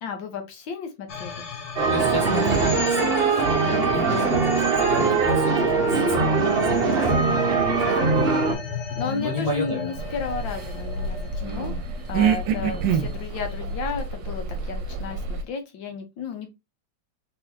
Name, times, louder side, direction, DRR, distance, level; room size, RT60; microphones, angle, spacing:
voice 1, 0.0-1.4 4.0-4.4 6.9-7.2 7.9-8.0 9.0-11.8 12.1-16.5, left 5 dB, 80° left, 1.6 m, -33 dB
sound 1, 1.1-13.5, left 5 dB, 50° left, 0.8 m, -37 dB
sound 2, 1.8-8.5, right 4 dB, 45° right, 0.8 m, -21 dB
voice 2, 1.9-7.4 7.8-8.1 9.0-10.0 11.4-12.0 12.5-12.8, left 1 dB, 25° left, 1.0 m, -33 dB
sound 3, 10.0-15.4, right 5 dB, 75° right, 1.3 m, -27 dB
4.1 x 3.8 x 2.7 m
omnidirectional pair, 2.1 m